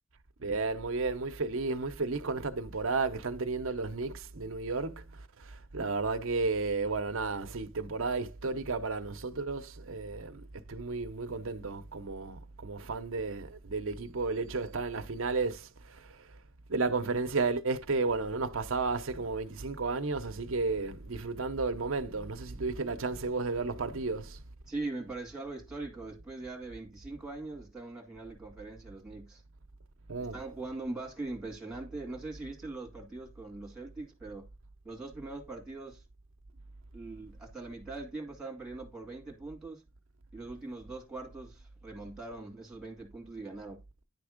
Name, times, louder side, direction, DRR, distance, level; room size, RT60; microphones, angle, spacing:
voice 1, 0.4-5.0 5.7-10.4 10.7-15.7 16.7-24.4 30.1-30.4, right 3 dB, 60° right, 0.8 m, -33 dB
voice 2, 24.7-29.4 30.2-34.4 34.8-36.0 36.9-39.8 40.3-43.8, right 2 dB, 5° right, 2.2 m, -41 dB
10.5 x 3.5 x 5.0 m
head